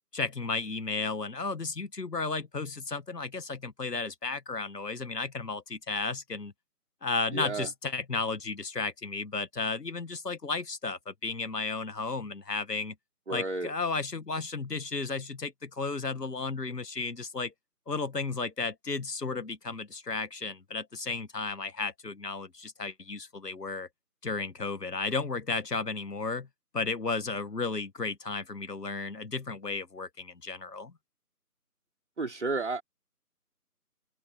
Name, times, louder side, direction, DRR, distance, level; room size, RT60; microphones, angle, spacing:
voice 1, 0.1-6.5 7.0-12.9 13.3-17.5 17.9-23.9 24.2-26.5 26.7-30.9, left 4 dB, 85° left, 2.0 m, -33 dB
voice 2, 7.3-7.7 13.3-13.7 32.2-32.8, right 3 dB, 45° right, 3.1 m, -32 dB
open air
figure-of-eight pair, 175°, 47 cm